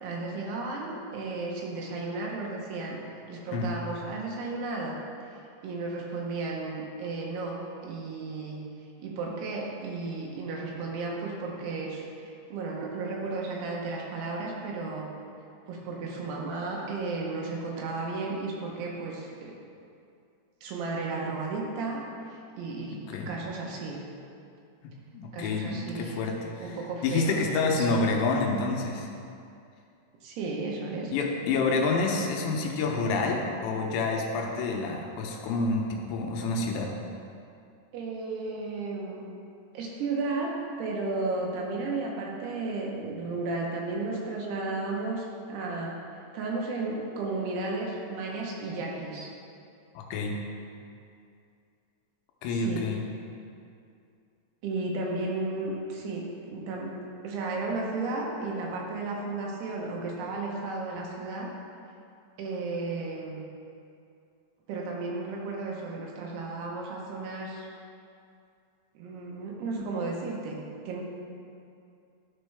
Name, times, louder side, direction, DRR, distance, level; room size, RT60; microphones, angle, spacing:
voice 1, 0.0-3.0 3.3-5.0 5.6-8.6 9.0-15.1 15.7-19.5 20.6-23.0 23.3-24.0 25.3-26.3 26.6-27.4 27.7-28.0 30.2-31.1 37.9-39.2 39.7-40.5 40.8-45.9 46.3-49.3 52.5-52.9 54.6-57.0 57.2-61.5 62.4-63.5 64.7-67.7 69.0-71.0, right 3 dB, 75° right, -2 dB, 2.8 m, -34 dB
voice 2, 24.8-26.8 27.0-29.1 31.1-36.9 50.0-50.4 52.4-53.0, left 3 dB, 80° left, 1 dB, 2.8 m, -28 dB
12.5 x 4.5 x 3.3 m, 2.5 s
omnidirectional pair, 5.2 m